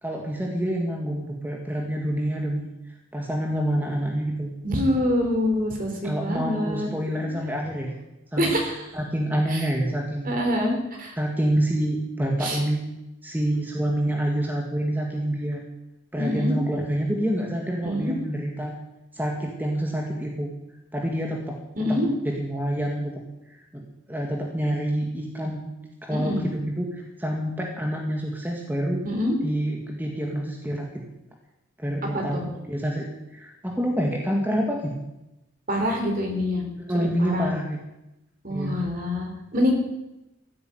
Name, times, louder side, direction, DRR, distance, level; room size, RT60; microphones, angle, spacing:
voice 1, 0.0-2.7 3.1-4.5 6.0-7.9 8.3-8.5 8.9-10.3 11.2-12.9 13.2-15.6 16.1-18.7 19.1-20.5 20.9-22.0 22.4-23.2 23.5-25.7 26.1-29.1 29.4-31.0 31.8-33.1 33.3-35.0 36.8-37.8 38.5-38.8, right 1 dB, 10° right, 0 dB, 1.9 m, -27 dB
voice 2, 4.6-6.9 7.2-7.3 8.4-8.9 9.5-9.7 10.2-11.2 12.4-12.6 16.2-16.6 17.8-18.1 21.8-22.1 26.1-26.4 29.0-29.4 32.1-32.4 35.7-36.6 37.2-37.5 38.4-39.7, left 1 dB, 45° right, 2 dB, 3.6 m, -25 dB
15.0 x 8.7 x 9.2 m, 0.93 s
head